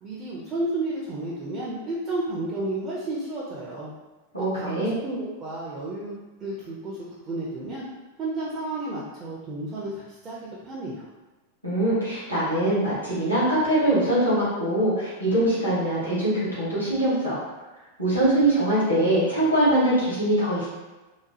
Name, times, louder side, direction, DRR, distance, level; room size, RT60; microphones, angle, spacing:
voice 1, 0.0-3.9 4.4-6.1 6.4-7.9 8.2-11.1, right 2 dB, 30° right, -7 dB, 0.5 m, -32 dB
voice 2, 4.3-4.9 11.6-17.4 18.0-20.7, right 1 dB, 85° left, -10 dB, 1.1 m, -23 dB
2.9 x 2.1 x 2.7 m, 1.2 s
figure-of-eight pair, 90°, 0 cm